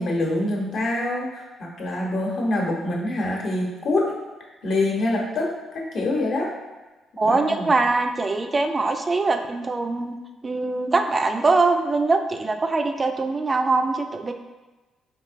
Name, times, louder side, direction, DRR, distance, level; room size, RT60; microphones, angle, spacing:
voice 1, 0.0-4.1 4.6-6.5 7.2-7.7, left 2 dB, 65° left, -2 dB, 0.9 m, -25 dB
voice 2, 7.2-10.2 10.4-14.3, right 3 dB, 30° right, 6 dB, 0.3 m, -22 dB
4.3 x 3.1 x 2.5 m, 1.2 s
cardioid pair, 90°, 0 cm